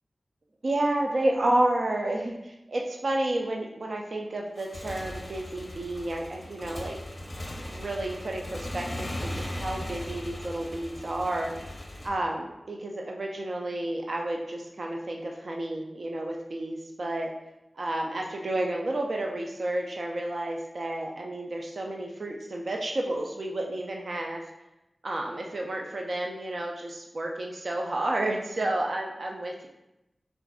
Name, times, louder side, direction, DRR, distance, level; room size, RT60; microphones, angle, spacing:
voice 1, 0.6-7.0 7.7-9.1 9.3-11.5 12.0-17.3 17.8-24.4 25.0-29.7, right 1 dB, 70° right, 0 dB, 0.4 m, -31 dB
Motorcycle / Engine, 4.5-12.1, left 1 dB, 40° left, 0.5 m, -38 dB
3.9 x 2.5 x 3.6 m, 0.92 s
wide cardioid pair, 55°, 0 cm